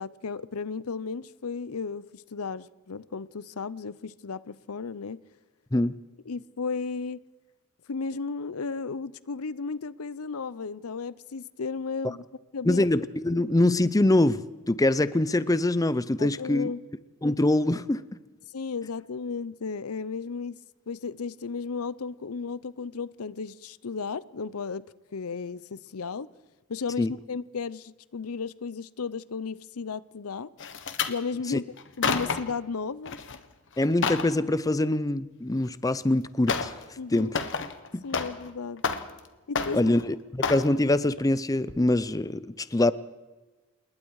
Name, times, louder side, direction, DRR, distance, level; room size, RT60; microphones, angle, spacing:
voice 1, 0.0-5.2 6.3-7.2 7.9-12.2 12.5-12.8 16.2-16.8 18.5-20.6 20.9-24.9 25.1-26.3 26.7-30.5 31.1-33.2 37.0-37.3 38.0-38.8 39.5-39.8, left 5 dB, 80° left, 0.7 m, -34 dB
voice 2, 12.7-16.7 17.2-18.0 27.0-27.1 31.5-31.6 33.8-36.7 37.1-37.4 37.9-38.0 39.7-42.9, left 1 dB, 15° left, 0.6 m, -24 dB
sound 1, 30.6-31.1 31.8-32.6 33.0-33.4 33.7-34.3 35.7-35.8 36.5-36.8 37.1-38.5 38.8-39.3 39.5-40.0 40.4-40.7 41.2-41.4 41.7-41.8, left 5 dB, 60° left, 1.5 m, -30 dB
28.0 x 21.0 x 4.8 m
head